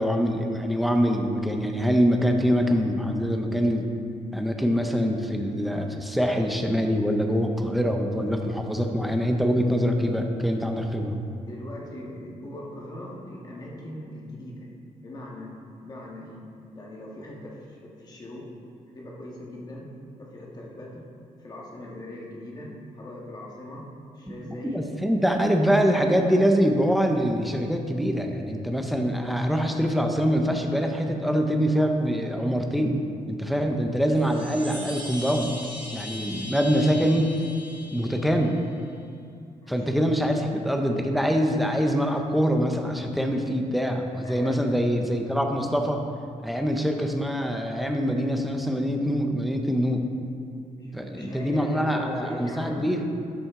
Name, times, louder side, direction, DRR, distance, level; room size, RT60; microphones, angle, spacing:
voice 1, 0.0-3.8 4.3-11.2 24.4-33.0 33.3-35.5 35.9-37.3 37.9-38.5 39.7-46.0 46.4-50.1 50.9-53.1, equal, ahead, 3 dB, 0.7 m, -24 dB
voice 2, 11.4-14.7 15.0-15.5 15.8-16.4 16.7-18.5 18.9-19.9 20.2-21.0 21.4-23.8 24.1-24.9 39.6-40.2 44.2-44.7 50.7-52.9, left 1 dB, 30° left, -3 dB, 1.6 m, -40 dB
Chime, 34.0-38.7, left 1 dB, 35° right, 1.2 m, -40 dB
12.5 x 6.1 x 3.7 m, 2.4 s
wide cardioid pair, 165°, 13 cm